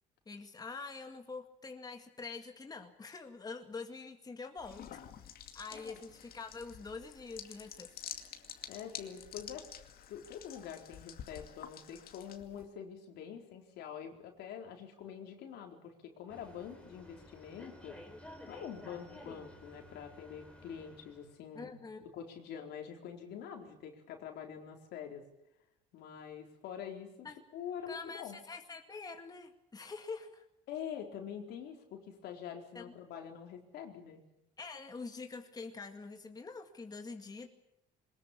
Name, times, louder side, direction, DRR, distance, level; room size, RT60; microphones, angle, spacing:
voice 1, 0.3-5.0 5.5-7.9 21.5-22.0 27.2-27.4 27.9-30.4 32.7-32.9 34.6-37.5, left 4 dB, 20° left, 5 dB, 2.1 m, -45 dB
sound 1, 4.6-12.7, left 9 dB, 60° left, 2.3 m, -49 dB
voice 2, 8.7-9.7 10.1-18.0 18.5-21.7 22.0-25.2 25.9-27.3 27.5-28.4 30.7-34.2, left 8 dB, 80° left, 2 dB, 4.1 m, -45 dB
sound 2, 16.3-21.3, left 1 dB, 5° left, 3.9 m, -53 dB
22.0 x 20.5 x 8.6 m, 0.85 s
cardioid pair, 110°, 17 cm